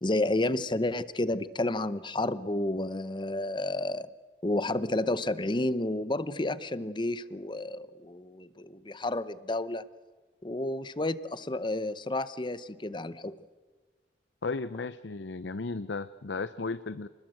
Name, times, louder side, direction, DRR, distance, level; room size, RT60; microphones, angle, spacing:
voice 1, 0.0-4.1 4.4-9.8 10.4-13.3, left 2 dB, 25° left, 15 dB, 0.8 m, -31 dB
voice 2, 14.4-17.1, left 3 dB, 75° left, 13 dB, 0.7 m, -35 dB
28.5 x 20.5 x 7.9 m, 1.4 s
head